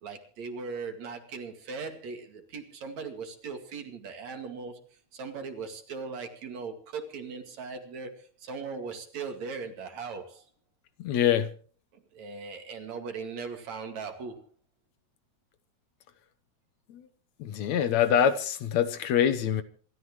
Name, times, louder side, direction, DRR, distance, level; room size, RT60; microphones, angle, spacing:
voice 1, 0.0-4.8 5.1-10.5 11.9-14.4, right 5 dB, 65° right, 3.4 m, -39 dB
voice 2, 11.0-11.5 16.9-17.1 17.4-19.6, left 9 dB, 70° left, 2.2 m, -25 dB
27.0 x 13.5 x 3.1 m
omnidirectional pair, 3.4 m